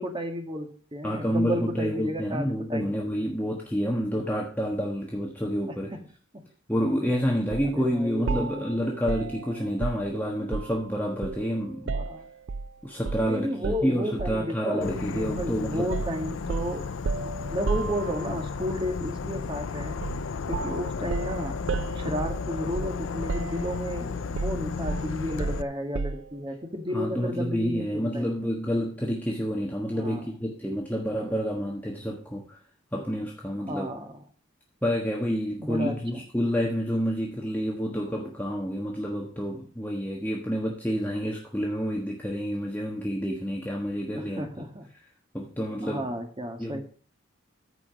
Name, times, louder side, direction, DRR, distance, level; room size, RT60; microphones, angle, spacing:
voice 1, 0.0-3.0 5.7-6.0 6.3-6.4 7.6-8.7 11.9-12.2 13.2-16.9 17.5-20.0 20.5-21.6 21.9-28.3 29.9-30.3 33.5-34.2 35.6-36.2 44.1-44.9 45.8-46.8, equal, 25° right, 4 dB, 1.7 m, -33 dB
voice 2, 1.0-5.9 6.7-11.9 12.8-15.9 26.9-32.6 32.9-33.9 34.8-44.4 45.3-46.1 46.6-46.8, equal, 10° left, -2 dB, 1.3 m, -29 dB
sound 1, 7.5-7.7 8.3-10.9 11.2-12.7 13.1-13.3 13.6-14.5 15.4-15.6 15.9-18.5 20.0-20.3 20.5-23.0 23.3-23.9 24.4-26.3, right 4 dB, 65° right, 0.4 m, -33 dB
Insect / Frog, 14.8-25.6, left 4 dB, 80° left, 0.5 m, -33 dB
14.0 x 5.0 x 6.1 m, 0.43 s
head